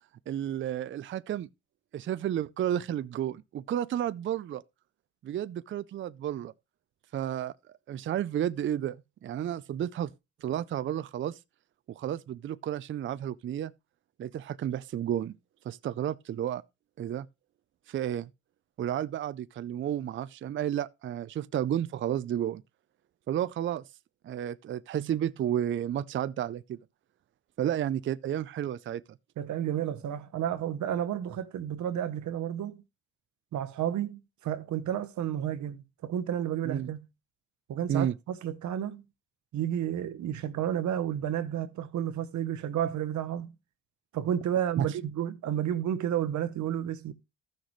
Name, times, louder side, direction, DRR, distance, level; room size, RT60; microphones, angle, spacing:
voice 1, 0.3-1.5 1.9-4.6 5.2-6.5 7.1-7.5 7.9-9.0 9.2-10.1 10.4-11.4 11.9-13.7 14.2-15.3 15.6-16.6 17.0-17.3 17.9-18.3 18.8-22.6 23.3-23.8 24.2-26.8 27.6-29.0 36.7-36.9 37.9-38.1 44.8-44.9, right 10 dB, 40° right, 0.4 m, -31 dB
voice 2, 29.4-32.8 33.5-37.1 37.7-39.0 39.5-43.5 44.1-47.1, right 10 dB, 70° right, 1.0 m, -31 dB
14.0 x 6.4 x 3.1 m
cardioid pair, 90°, 30 cm